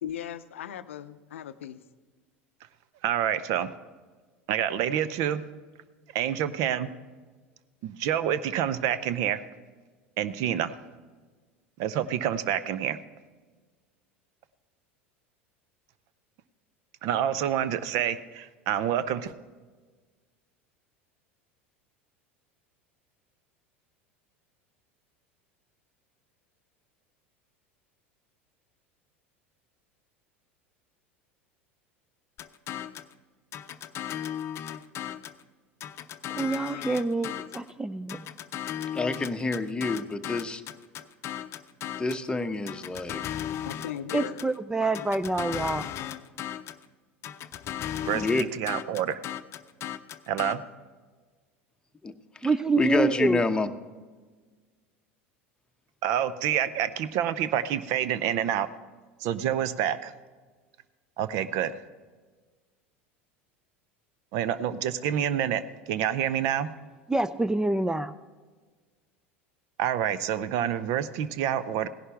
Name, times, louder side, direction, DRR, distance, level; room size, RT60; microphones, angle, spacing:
voice 1, 0.0-1.8 43.7-44.4 44.8-45.1, left 10 dB, 80° left, 13 dB, 0.6 m, -38 dB
voice 2, 3.0-3.7 4.5-5.4 6.1-6.9 7.8-9.4 10.2-10.7 11.8-13.0 17.0-19.3 48.0-49.2 50.3-50.6 56.0-58.7 59.2-60.1 61.2-61.8 64.3-65.6 65.9-66.7 69.8-71.9, right 10 dB, 55° right, 15 dB, 0.6 m, -27 dB
sound 1, 32.4-33.1 33.5-35.4 35.8-37.7 38.1-42.3 42.7-44.6 45.0-46.8 47.2-50.6, left 10 dB, 40° left, 0.6 m, -36 dB
voice 3, 36.3-38.3 44.1-45.9 52.4-53.4 67.1-68.1, right 3 dB, 10° right, 14 dB, 0.4 m, -27 dB
voice 4, 38.9-40.6 42.0-43.2 48.1-48.5 52.0-52.1 52.4-52.5 52.8-53.7, left 3 dB, 15° left, 8 dB, 0.9 m, -27 dB
17.0 x 11.0 x 3.4 m, 1.4 s
hypercardioid pair, 80°, 7 cm